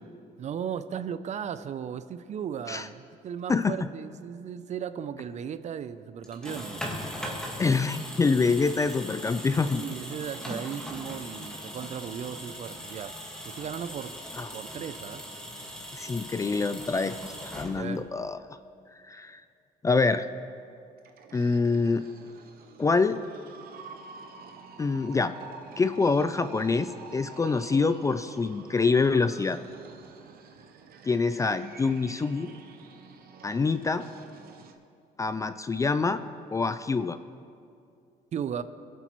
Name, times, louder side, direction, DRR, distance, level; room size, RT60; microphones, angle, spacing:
voice 1, 0.4-6.8 9.7-13.2 13.4-14.2 14.5-15.2 17.7-18.1 38.3-38.6, right 8 dB, 45° right, 13 dB, 0.5 m, -36 dB
sound 1, 6.2-18.1, equal, 5° left, 1.7 m, -39 dB
voice 2, 7.6-9.8 14.4-14.5 15.9-18.6 19.1-19.4 19.8-20.2 21.3-22.0 22.8-23.2 24.8-25.3 25.8-29.6 31.0-32.5 33.4-34.0 35.2-36.2 36.5-37.2, left 4 dB, 20° left, 12 dB, 0.3 m, -26 dB
sound 2, 21.0-34.7, right 5 dB, 60° right, 0.9 m, -48 dB
22.0 x 8.1 x 3.1 m, 2.4 s
cardioid pair, 110°, 17 cm